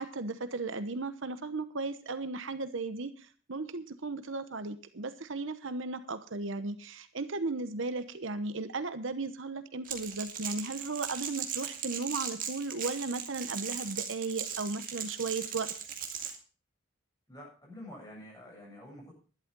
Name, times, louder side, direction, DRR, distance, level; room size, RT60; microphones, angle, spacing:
voice 1, 0.0-15.7, right 3 dB, 70° right, 11 dB, 1.0 m, -36 dB
Crackle, 9.8-16.3, right 8 dB, 40° right, 2.2 m, -38 dB
voice 2, 17.3-19.1, left 1 dB, 20° left, -2 dB, 7.8 m, -48 dB
12.0 x 11.5 x 5.4 m, 0.38 s
head